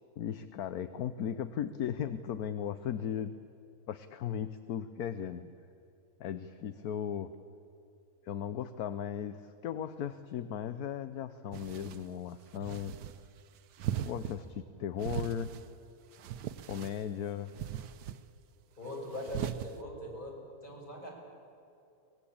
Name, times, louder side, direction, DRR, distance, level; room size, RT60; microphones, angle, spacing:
voice 1, 0.2-3.3 3.9-5.5 6.2-7.3 8.2-13.0 14.0-15.5 16.7-17.5, left 9 dB, 70° left, 12 dB, 1.3 m, -37 dB
sound 1, 11.5-12.1 12.6-13.2 13.8-14.4 15.0-15.7 16.1-17.0 17.5-18.2 19.1-19.7, right 10 dB, 85° right, 1.4 m, -38 dB
voice 2, 18.8-21.1, left 1 dB, 30° left, -2 dB, 6.2 m, -41 dB
24.0 x 19.5 x 8.6 m, 2.7 s
omnidirectional pair, 1.7 m